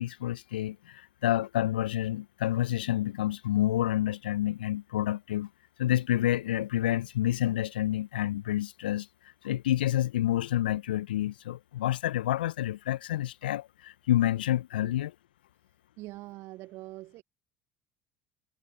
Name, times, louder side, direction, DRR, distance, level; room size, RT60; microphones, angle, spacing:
voice 1, 0.0-5.5 5.8-9.1 9.4-15.1, left 13 dB, 75° left, 1.5 m, -28 dB
voice 2, 16.0-17.2, right 18 dB, 55° right, 1.7 m, -43 dB
figure-of-eight pair, 65°, 5 cm